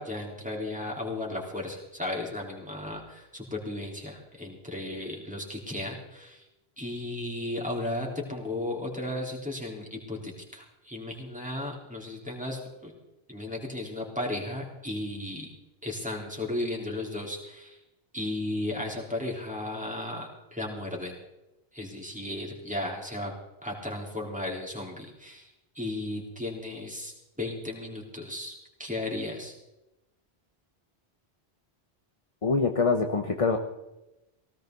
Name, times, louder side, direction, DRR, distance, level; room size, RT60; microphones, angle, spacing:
voice 1, 0.0-6.4 6.8-12.9 13.3-15.5 15.8-17.8 18.1-21.2 21.7-23.3 23.6-29.5, left 1 dB, 5° right, -2 dB, 4.0 m, -35 dB
voice 2, 32.4-33.6, left 4 dB, 35° left, 5 dB, 1.1 m, -24 dB
18.0 x 17.5 x 4.0 m, 0.96 s
omnidirectional pair, 1.1 m